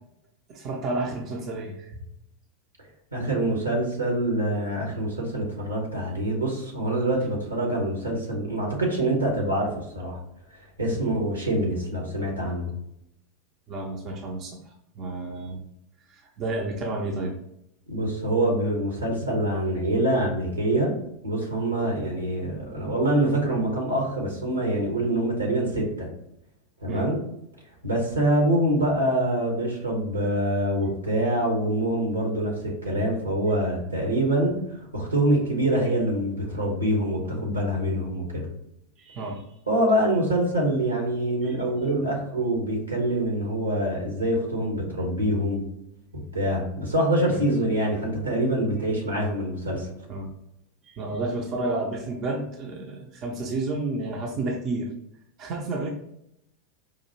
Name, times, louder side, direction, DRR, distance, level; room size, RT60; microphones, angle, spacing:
voice 1, 0.5-2.0 10.9-11.0 13.7-14.6 15.0-15.6 16.1-17.3 26.9-27.1 39.0-39.5 41.4-41.6 47.3-47.4 50.1-50.3 50.9-54.9 55.4-55.9, right 2 dB, 40° right, 1 dB, 0.6 m, -31 dB
voice 2, 3.1-10.2 10.8-12.7 17.9-20.9 21.2-26.1 26.8-27.2 27.8-34.6 34.9-38.5 39.7-45.6 46.1-49.9, right 1 dB, 80° right, 0 dB, 1.2 m, -25 dB
4.8 x 2.6 x 2.8 m, 0.79 s
figure-of-eight pair, 85°, 0 cm